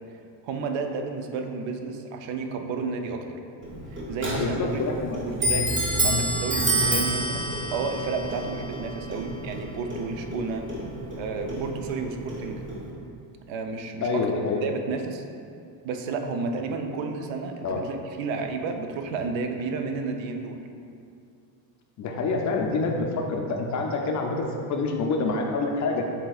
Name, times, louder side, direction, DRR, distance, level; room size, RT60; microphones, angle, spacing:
voice 1, 0.4-3.4 3.9-4.8 5.2-5.8 6.0-10.7 11.2-12.6 13.5-14.3 14.6-15.2 15.8-20.6, right 4 dB, 65° right, 5 dB, 0.6 m, -31 dB
Clock, 3.6-12.9, right 1 dB, 25° right, 0.9 m, -29 dB
voice 2, 4.4-5.2 6.9-7.1 14.0-14.6 17.6-17.8 22.0-26.0, left 3 dB, 40° left, 1 dB, 0.4 m, -27 dB
7.4 x 2.8 x 2.3 m, 2.4 s
cardioid pair, 110°, 50 cm